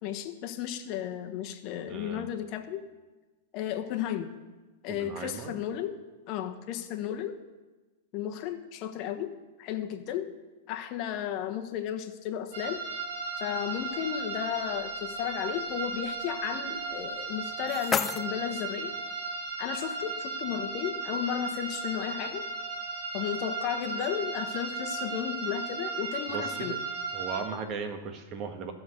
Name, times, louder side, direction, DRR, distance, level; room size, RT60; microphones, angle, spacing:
voice 1, 0.0-2.8 3.5-4.3 4.8-5.9 6.3-7.3 8.1-9.3 9.6-10.3 10.7-12.8 13.4-19.0 19.6-22.4 23.1-26.7, left 10 dB, 45° left, 7 dB, 1.2 m, -34 dB
voice 2, 1.9-2.3 4.9-5.6 26.3-26.8 27.1-28.7, right 5 dB, 35° right, 6 dB, 1.6 m, -37 dB
sound 1, 12.5-27.4, right 4 dB, 65° right, 2.3 m, -35 dB
sound 2, 17.2-19.2, left 6 dB, 20° left, 0.3 m, -34 dB
14.5 x 6.1 x 6.5 m, 1.2 s
hypercardioid pair, 120°, 0 cm